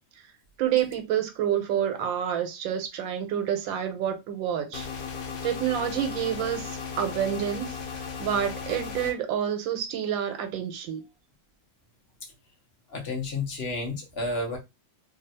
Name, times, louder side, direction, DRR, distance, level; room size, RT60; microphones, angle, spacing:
voice 1, 0.6-4.9 5.4-11.0, right 9 dB, 85° right, 1.4 m, -28 dB
sound 1, 4.7-9.1, left 6 dB, 75° left, 1.4 m, -36 dB
voice 2, 12.9-14.6, left 2 dB, 45° left, 0.8 m, -31 dB
3.3 x 2.3 x 2.6 m
omnidirectional pair, 2.0 m